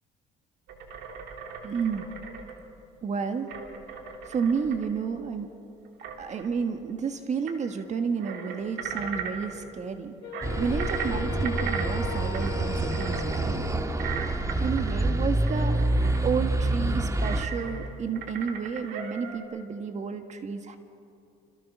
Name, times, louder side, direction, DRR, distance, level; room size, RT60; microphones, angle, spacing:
sound 1, 0.7-2.6 3.5-5.0 5.9-6.5 7.5-7.6 7.8-7.9 8.2-9.5 10.3-12.6 12.9-13.4 14.0-15.2 15.5-16.2 17.2-17.9 18.1-19.4, right 6 dB, 85° right, 3.0 m, -37 dB
voice 1, 1.6-2.1 3.0-3.5 4.3-5.5 6.2-13.7 14.6-20.8, right 6 dB, 45° right, 7 dB, 1.6 m, -31 dB
Wind instrument woodwind instrument, 10.2-14.6, left 12 dB, 85° left, 1.0 m, -39 dB
sound 2, 10.4-17.5, right 2 dB, 20° right, 1.4 m, -27 dB
27.0 x 26.0 x 6.2 m, 2.6 s
cardioid pair, 110°, 17 cm